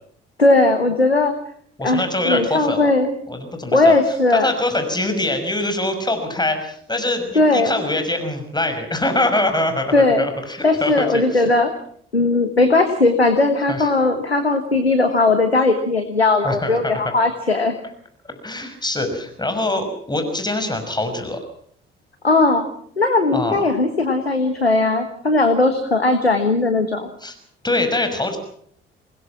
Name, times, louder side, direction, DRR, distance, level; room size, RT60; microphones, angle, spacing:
voice 1, 0.4-1.3 1.8-3.1 3.7-4.5 7.3-7.7 9.9-10.3 10.6-11.7 12.1-17.7 22.2-22.6 23.0-27.1, left 2 dB, 90° left, 7 dB, 1.4 m, -18 dB
voice 2, 1.8-2.9 3.3-3.9 4.3-11.4 13.7-13.9 16.4-17.1 18.4-21.4 23.3-23.7 27.2-27.3 27.6-28.4, left 2 dB, 15° left, 6 dB, 6.0 m, -24 dB
27.0 x 20.0 x 6.0 m, 0.62 s
figure-of-eight pair, 45°, 30 cm